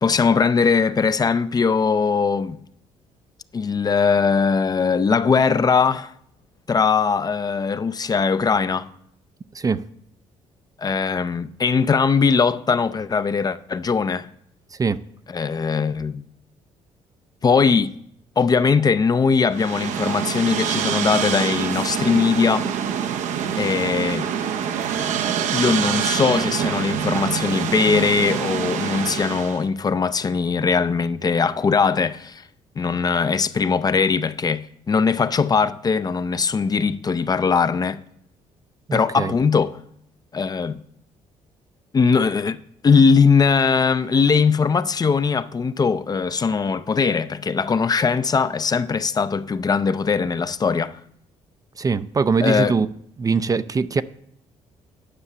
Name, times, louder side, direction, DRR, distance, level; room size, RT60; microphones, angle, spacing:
voice 1, 0.0-2.6 3.5-6.1 6.7-8.9 10.8-14.3 15.3-16.2 17.4-17.9 18.4-22.7 23.6-24.3 25.5-32.4 32.8-38.0 38.9-39.8 40.3-40.8 41.9-42.6 42.8-51.0 52.4-52.7, left 5 dB, 30° left, 0.5 m, -20 dB
sound 1, 19.5-29.6, right 8 dB, 75° right, 0.7 m, -25 dB
voice 2, 38.9-39.3 51.8-52.9 53.2-54.0, right 5 dB, 30° right, 0.4 m, -22 dB
9.9 x 5.7 x 6.7 m
supercardioid pair, 75°, 13 cm